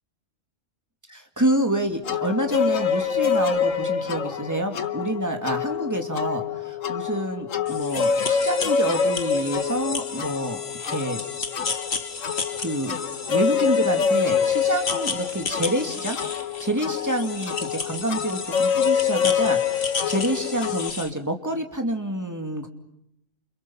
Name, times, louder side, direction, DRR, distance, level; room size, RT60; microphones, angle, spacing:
voice 1, 1.1-10.6 10.9-11.2 12.6-13.0 13.3-22.7, right 1 dB, 15° right, 4 dB, 2.5 m, -27 dB
sound 1, 2.0-20.9, left 7 dB, 80° left, 1.6 m, -26 dB
sound 2, 7.7-21.1, left 5 dB, 55° left, 1.7 m, -33 dB
29.5 x 28.5 x 5.8 m, 0.79 s
omnidirectional pair, 1.3 m